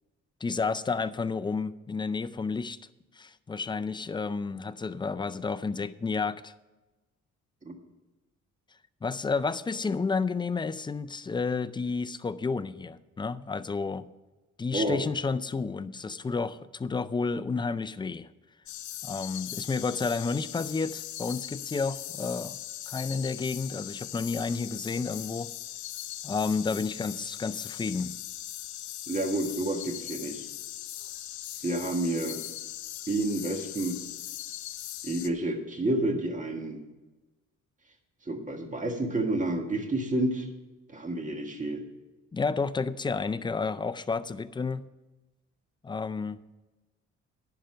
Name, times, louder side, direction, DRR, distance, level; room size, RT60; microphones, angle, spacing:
voice 1, 0.4-2.8 3.2-6.5 9.0-14.1 14.6-18.3 19.0-22.6 22.9-25.5 26.2-28.1 42.3-44.9 45.8-46.4, left 4 dB, 15° left, 13 dB, 0.4 m, -31 dB
sound 1, 18.7-35.3, left 13 dB, 70° left, 0.6 m, -40 dB
voice 2, 29.1-30.4 31.6-32.4 33.1-34.0 35.0-36.8 38.3-40.5 40.9-41.8, right 1 dB, 25° right, 4 dB, 1.8 m, -29 dB
10.5 x 5.8 x 7.8 m, 1.1 s
cardioid pair, 90°, 30 cm